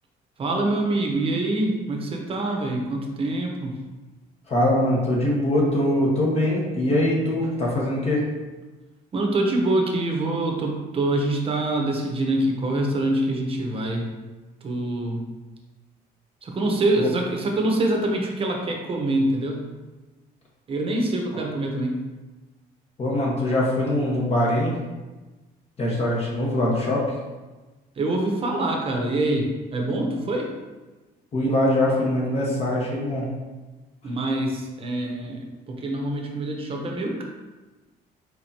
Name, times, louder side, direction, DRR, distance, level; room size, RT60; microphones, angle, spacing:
voice 1, 0.4-3.8 9.1-14.1 14.6-15.2 16.4-19.7 20.7-22.0 28.0-30.5 34.0-37.2, right 2 dB, 35° right, 1 dB, 0.9 m, -25 dB
voice 2, 4.5-8.2 17.0-17.1 23.0-24.7 25.8-27.1 31.3-33.3, left 1 dB, 40° left, -4 dB, 1.2 m, -22 dB
4.6 x 4.1 x 2.8 m, 1.2 s
cardioid pair, 110°, 17 cm